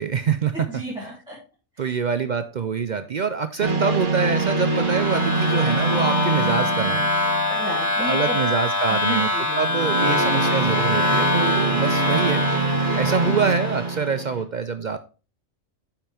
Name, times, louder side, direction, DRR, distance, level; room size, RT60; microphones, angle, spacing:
voice 1, 0.0-0.7 1.8-7.0 8.0-12.4 13.0-15.0, right 6 dB, 60° right, 10 dB, 0.4 m, -25 dB
voice 2, 0.7-1.3 1.8-2.0 7.5-8.4 8.9-9.6, equal, 5° right, -8 dB, 3.0 m, -32 dB
sound 1, 3.6-8.1 9.6-14.4, right 3 dB, 40° right, 1.4 m, -24 dB
sound 2, 4.3-14.0, left 3 dB, 80° left, 2.4 m, -24 dB
8.8 x 5.8 x 3.4 m, 0.33 s
omnidirectional pair, 1.4 m